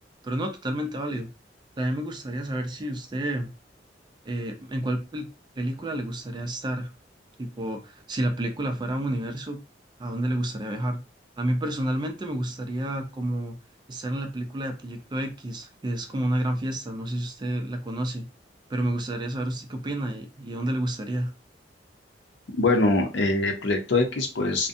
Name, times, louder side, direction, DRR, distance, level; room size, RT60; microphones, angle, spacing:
voice 1, 0.2-1.3 1.8-3.5 4.2-5.3 5.6-6.9 7.4-9.6 10.0-11.0 11.4-13.6 13.9-18.3 18.7-21.3, right 1 dB, 25° right, 5 dB, 0.4 m, -30 dB
voice 2, 22.6-24.7, left 2 dB, 80° left, 3 dB, 0.6 m, -23 dB
2.5 x 2.1 x 2.5 m, 0.28 s
head